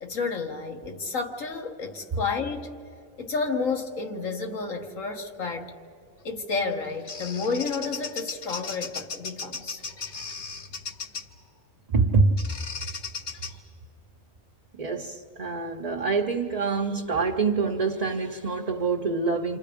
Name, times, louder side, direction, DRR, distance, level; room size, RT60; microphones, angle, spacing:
voice 1, 0.0-2.7 3.2-5.7 6.2-9.8, left 4 dB, 80° left, 1.9 m, -31 dB
Bird vocalization bird call bird song, 6.6-11.4 12.4-13.5, left 5 dB, 60° left, 1.3 m, -36 dB
voice 2, 11.9-12.5 13.5-13.6 14.8-19.6, right 4 dB, 35° right, 0.7 m, -25 dB
28.5 x 26.5 x 5.1 m
omnidirectional pair, 1.4 m